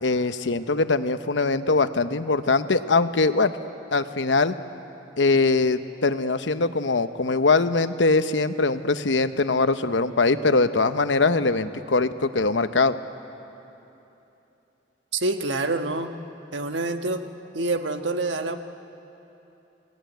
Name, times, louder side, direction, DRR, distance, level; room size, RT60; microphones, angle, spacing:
voice 1, 0.0-3.5 3.9-4.5 5.2-13.0, left 3 dB, 80° left, 11 dB, 0.9 m, -22 dB
voice 2, 15.1-16.1 16.5-17.3 17.5-18.6, right 2 dB, 80° right, 7 dB, 1.4 m, -26 dB
29.0 x 19.0 x 9.3 m, 3.0 s
head